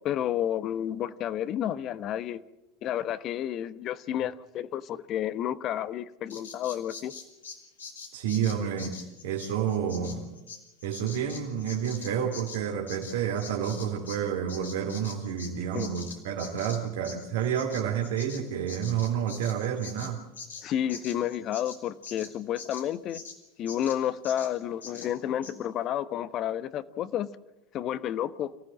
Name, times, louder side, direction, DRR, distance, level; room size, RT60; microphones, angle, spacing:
voice 1, 0.0-2.4 2.8-7.1 15.7-15.9 20.6-23.2 23.6-27.3 27.7-28.5, left 10 dB, 50° left, 1.1 m, -31 dB
Bird vocalization bird call bird song, 6.3-14.2 14.5-23.4 23.7-24.0 24.2-24.5 24.8-25.1 25.4-25.5, left 5 dB, 90° left, 3.2 m, -44 dB
voice 2, 8.1-10.3 10.8-20.2, right 8 dB, 70° right, 2.6 m, -30 dB
26.0 x 16.0 x 7.6 m
hypercardioid pair, 80°, 0 cm